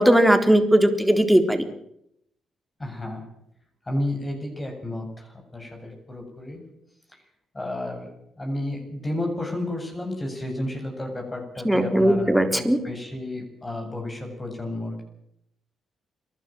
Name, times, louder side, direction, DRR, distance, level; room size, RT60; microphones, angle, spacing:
voice 1, 0.0-1.6 11.7-12.8, right 1 dB, 5° right, 6 dB, 3.8 m, -18 dB
voice 2, 2.8-3.2 3.9-6.6 7.5-8.1 8.4-15.0, left 1 dB, 30° left, 2 dB, 7.9 m, -32 dB
29.0 x 12.5 x 7.7 m, 0.75 s
hypercardioid pair, 45°, 0 cm